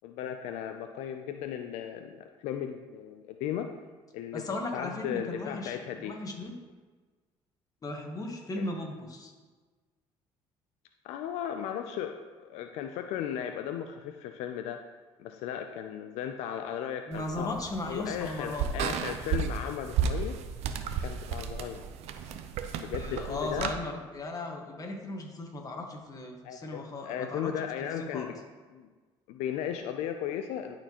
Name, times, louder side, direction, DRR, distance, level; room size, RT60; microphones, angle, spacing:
voice 1, 0.0-3.7 4.1-6.1 8.6-8.7 11.0-12.1 12.4-14.8 15.2-17.6 17.9-20.4 21.0-21.8 22.8-23.7 26.4-28.3 28.7-28.9 29.3-30.8, left 9 dB, 85° left, 6 dB, 0.4 m, -36 dB
voice 2, 4.3-6.6 7.8-9.3 17.1-18.7 22.9-27.7 28.0-28.3, left 2 dB, 35° left, 2 dB, 1.3 m, -37 dB
sound 1, 17.1-23.7, right 7 dB, 75° right, 0.5 m, -33 dB
11.0 x 4.3 x 2.9 m, 1.4 s
supercardioid pair, 80°, 11 cm